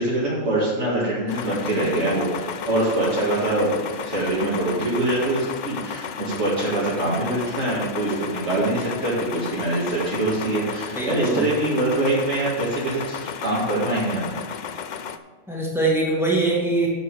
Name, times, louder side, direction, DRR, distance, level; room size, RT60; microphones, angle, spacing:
voice 1, 0.0-3.8 4.0-14.3, right 2 dB, 65° right, -9 dB, 2.4 m, -24 dB
sound 1, 1.3-15.2, left 7 dB, 55° left, 0.5 m, -33 dB
voice 2, 10.9-11.5 15.5-16.9, right 2 dB, ahead, -4 dB, 2.2 m, -22 dB
10.5 x 7.5 x 4.8 m, 1.5 s
omnidirectional pair, 1.3 m